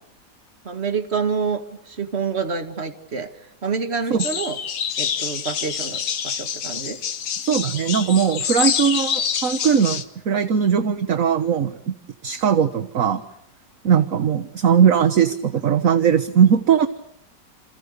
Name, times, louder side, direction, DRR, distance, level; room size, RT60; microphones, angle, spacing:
voice 1, 0.6-3.3 3.6-4.6 5.0-7.0, right 5 dB, 40° right, 8 dB, 2.2 m, -27 dB
sound 1, 4.2-10.0, left 8 dB, 80° left, 2.0 m, -26 dB
voice 2, 7.4-11.9 12.2-13.2 13.8-16.9, right 7 dB, 55° right, 10 dB, 1.6 m, -19 dB
29.0 x 28.0 x 6.8 m, 0.74 s
omnidirectional pair, 1.8 m